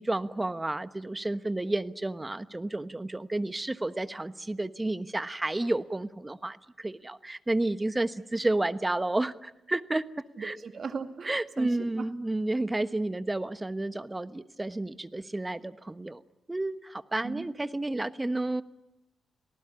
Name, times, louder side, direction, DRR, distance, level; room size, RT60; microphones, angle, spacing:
voice 1, 0.0-10.6 11.2-16.2 16.5-18.6, right 2 dB, 20° right, 13 dB, 1.2 m, -31 dB
voice 2, 10.4-12.1 17.2-17.5, right 5 dB, 55° right, 7 dB, 2.2 m, -38 dB
28.5 x 19.0 x 9.9 m, 0.97 s
supercardioid pair, 55°, 0 cm